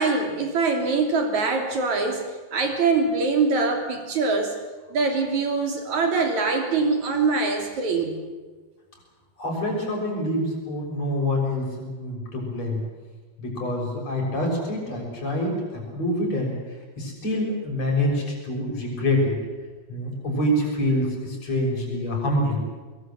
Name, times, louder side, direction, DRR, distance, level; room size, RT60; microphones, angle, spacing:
voice 1, 0.0-4.6 4.9-8.2, right 4 dB, 45° right, 4 dB, 3.9 m, -23 dB
voice 2, 9.4-12.8 13.4-16.6 17.0-19.4 19.9-22.6, left 1 dB, 35° left, 0 dB, 7.5 m, -26 dB
23.5 x 22.5 x 7.8 m, 1.3 s
omnidirectional pair, 5.3 m